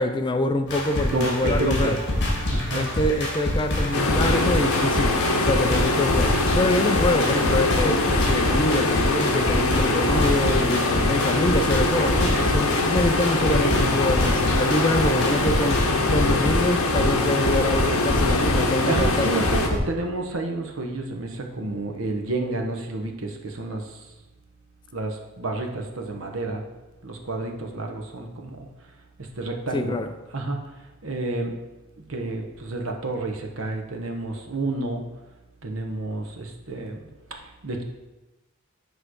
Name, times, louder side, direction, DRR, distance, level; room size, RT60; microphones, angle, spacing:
voice 1, 0.0-2.0 2.7-19.3 29.7-30.1, left 2 dB, 20° left, 8 dB, 0.3 m, -25 dB
sound 1, 0.7-19.8, left 1 dB, 55° left, 1.8 m, -26 dB
voice 2, 1.1-2.0 2.5-2.9 10.1-11.1 18.8-24.0 24.9-26.6 27.0-28.7 29.2-30.6 31.0-31.6 32.1-35.0 35.6-37.8, right 2 dB, 65° right, 3 dB, 1.0 m, -30 dB
sound 2, 3.9-19.7, left 2 dB, 75° left, 0.9 m, -23 dB
8.4 x 3.2 x 6.3 m, 1.1 s
head